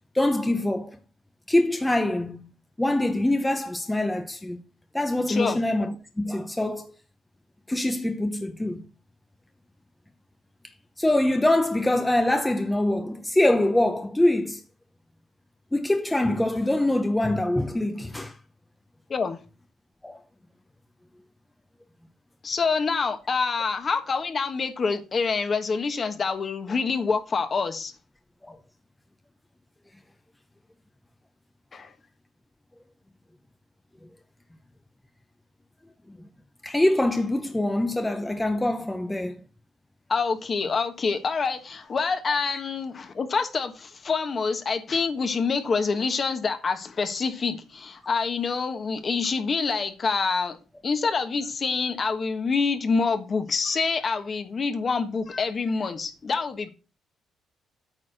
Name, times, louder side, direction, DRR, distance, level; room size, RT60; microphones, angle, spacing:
voice 1, 0.1-1.0 1.5-2.5 2.8-4.6 4.9-6.9 7.7-8.8 11.0-14.6 15.7-18.3 20.0-20.2 28.4-28.6 36.6-39.3 42.3-42.4, left 1 dB, 10° left, 0.8 m, -24 dB
voice 2, 5.3-5.6 19.1-19.4 22.4-27.9 31.7-31.9 40.1-50.6 50.8-56.7, left 4 dB, 40° left, 1.3 m, -26 dB
8.8 x 4.2 x 6.4 m
cardioid pair, 90°, 0 cm